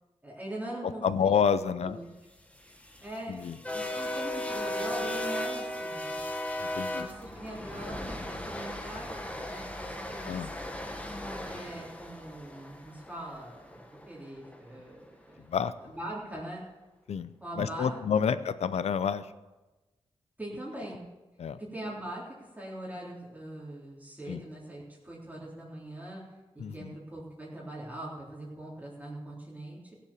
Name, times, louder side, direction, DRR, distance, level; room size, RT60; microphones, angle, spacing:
voice 1, 0.2-1.3 1.8-2.1 3.0-3.4 3.7-6.2 6.9-10.4 11.4-13.8 14.1-15.4 15.8-16.6 17.4-18.2 20.4-21.1 21.7-26.2 26.5-29.9, right 1 dB, 15° right, -6 dB, 3.7 m, -42 dB
voice 2, 0.8-2.0 3.3-3.6 6.6-7.1 10.2-10.5 15.4-15.7 17.1-17.3 17.6-19.3 21.4-21.6 24.3-24.4 26.6-27.0, left 7 dB, 85° left, 14 dB, 0.7 m, -29 dB
sound 1, 2.4-14.6, left 1 dB, 10° left, 1.6 m, -37 dB
16.0 x 7.2 x 7.2 m, 1.1 s
cardioid pair, 75°, 11 cm